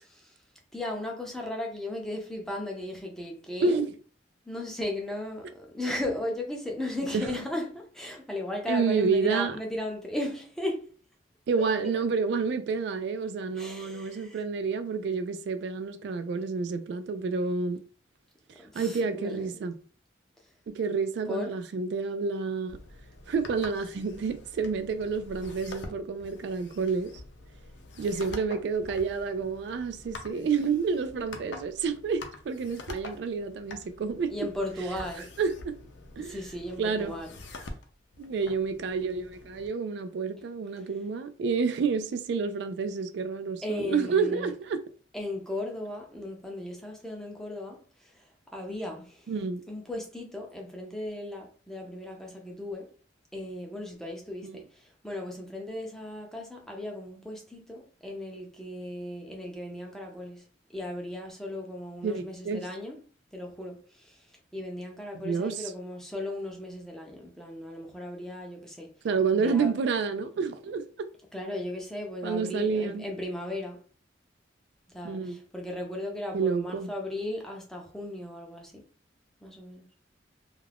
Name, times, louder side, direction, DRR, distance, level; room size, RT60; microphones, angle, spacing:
voice 1, 0.7-3.8 4.4-10.9 11.6-12.0 13.5-14.4 18.6-19.6 21.3-21.5 34.3-35.3 36.2-37.4 40.8-40.9 43.6-44.5 45.1-49.3 49.7-52.9 53.3-60.5 60.7-63.0 63.3-68.9 69.3-69.7 71.3-73.8 74.9-78.8 79.4-79.8, left 1 dB, 5° left, 0.5 m, -36 dB
voice 2, 8.7-9.6 11.5-17.8 18.7-19.7 20.7-22.8 23.3-27.1 28.0-34.3 35.4-35.8 36.2-36.4 36.8-37.2 38.2-44.8 49.3-49.6 54.4-54.6 62.0-62.6 65.2-65.7 69.0-70.8 72.2-73.1 75.0-75.4 76.3-76.9, right 5 dB, 65° right, 0.3 m, -29 dB
sound 1, 22.7-39.7, left 2 dB, 80° left, 0.5 m, -46 dB
2.3 x 2.3 x 3.3 m
head